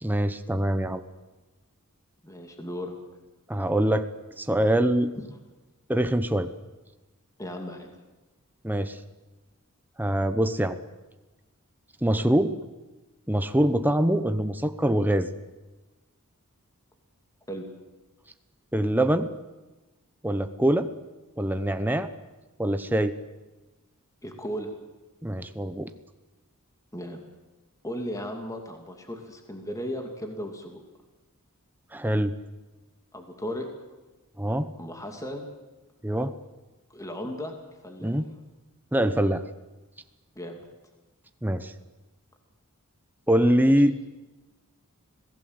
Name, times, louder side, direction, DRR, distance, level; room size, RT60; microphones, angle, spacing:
voice 1, 0.0-1.0 3.5-4.1 4.4-5.1 5.9-6.5 8.6-9.0 10.0-10.8 12.0-12.6 13.3-15.3 18.7-19.3 20.2-20.9 21.4-22.1 22.6-23.2 25.2-25.9 31.9-32.4 34.4-34.7 36.0-36.4 38.0-38.3 38.9-39.4 41.4-41.7 43.3-44.0, right 1 dB, 10° right, 9 dB, 0.9 m, -24 dB
voice 2, 2.2-2.9 7.4-7.9 17.5-17.7 24.2-24.7 26.9-27.2 27.8-30.8 33.1-33.7 34.8-35.5 36.9-37.5 37.8-38.2 40.4-40.6 43.6-43.8, equal, 15° left, 3 dB, 2.5 m, -36 dB
26.5 x 17.5 x 8.1 m, 1.1 s
head